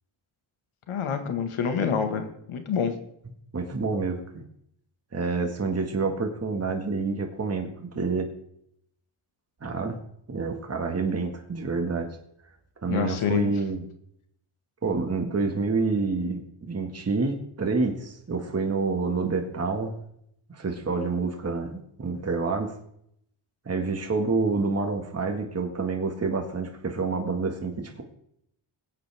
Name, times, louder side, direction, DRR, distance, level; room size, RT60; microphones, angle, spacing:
voice 1, 0.9-2.9 12.9-13.5, left 7 dB, 85° left, 7 dB, 1.7 m, -27 dB
voice 2, 3.5-4.4 5.1-8.3 9.6-10.0 10.3-12.2 12.8-13.8 14.8-19.9 20.5-22.7 23.7-28.0, right 4 dB, 30° right, 3 dB, 1.8 m, -28 dB
20.5 x 8.5 x 3.5 m, 0.72 s
cardioid pair, 100°, 48 cm